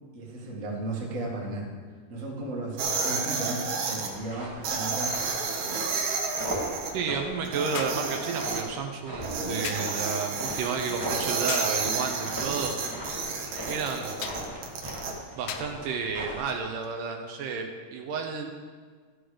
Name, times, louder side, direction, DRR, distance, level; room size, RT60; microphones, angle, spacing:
voice 1, 0.1-1.7 2.1-5.2, right 2 dB, 30° right, -2 dB, 1.6 m, -35 dB
sound 1, 2.8-4.1 4.6-6.9 7.4-8.6 9.2-15.1, right 4 dB, 60° right, 1.8 m, -31 dB
sound 2, 4.1-16.6, right 1 dB, 5° right, 2.1 m, -39 dB
voice 2, 6.9-12.7 13.7-14.2 15.4-18.5, right 5 dB, 80° right, 4 dB, 2.3 m, -31 dB
sound 3, 7.7-8.1 9.6-10.0 11.5-11.8 14.2-14.5 15.5-15.8 16.8-16.9, left 9 dB, 80° left, 1.8 m, -36 dB
13.5 x 7.9 x 5.0 m, 1.6 s
omnidirectional pair, 4.0 m